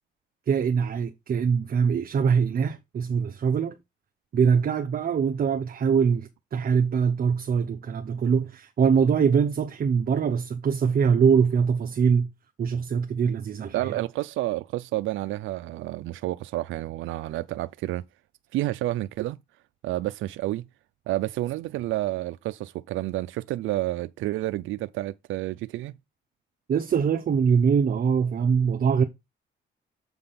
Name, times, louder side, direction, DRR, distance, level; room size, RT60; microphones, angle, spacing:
voice 1, 0.5-3.8 4.3-12.3 12.6-14.0 26.7-29.0, right 6 dB, 50° right, 0.9 m, -23 dB
voice 2, 13.7-18.0 18.5-19.4 19.8-20.7 21.1-25.9, right 16 dB, 80° right, 0.4 m, -30 dB
7.7 x 3.5 x 5.7 m
cardioid pair, 90°, 20 cm